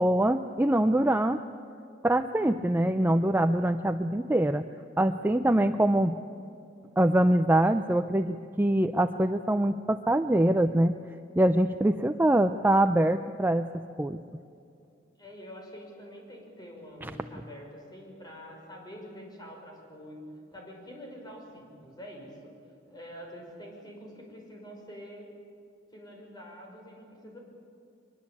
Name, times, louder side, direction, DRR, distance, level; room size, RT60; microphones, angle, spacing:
voice 1, 0.0-1.4 2.0-4.7 5.0-6.2 7.0-10.9 11.4-14.2 17.0-17.1, right 1 dB, 10° right, 8 dB, 0.5 m, -24 dB
voice 2, 15.2-20.2 20.5-22.5 22.9-25.3 25.9-27.4, equal, 20° left, 0 dB, 5.7 m, -46 dB
23.5 x 21.0 x 8.5 m, 2.5 s
head